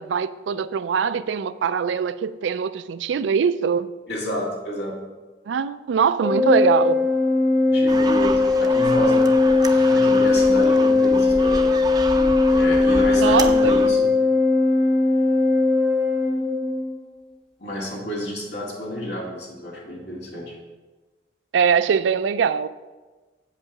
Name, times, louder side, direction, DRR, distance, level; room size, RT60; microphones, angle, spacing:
voice 1, 0.0-3.9 5.5-7.0 13.2-14.0 21.5-22.7, right 6 dB, 80° right, 0.4 m, -22 dB
voice 2, 4.1-5.0 7.7-11.8 12.5-14.1 17.6-20.5, equal, 60° left, 2.2 m, -30 dB
Organ, 6.2-17.0, left 3 dB, ahead, 1.0 m, -19 dB
sound 1, 7.9-13.9, right 3 dB, 20° right, 0.5 m, -31 dB
8.1 x 5.4 x 5.9 m
head